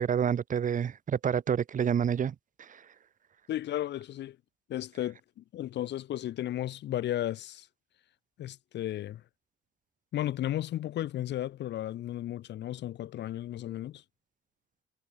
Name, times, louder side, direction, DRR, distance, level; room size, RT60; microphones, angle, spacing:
voice 1, 0.0-2.3 2.7-2.8, right 8 dB, 40° right, 0.7 m, -28 dB
voice 2, 3.5-4.4 4.7-7.7 8.4-9.2 10.1-14.0, left 13 dB, 60° left, 0.5 m, -34 dB
cardioid pair, 90°, 20 cm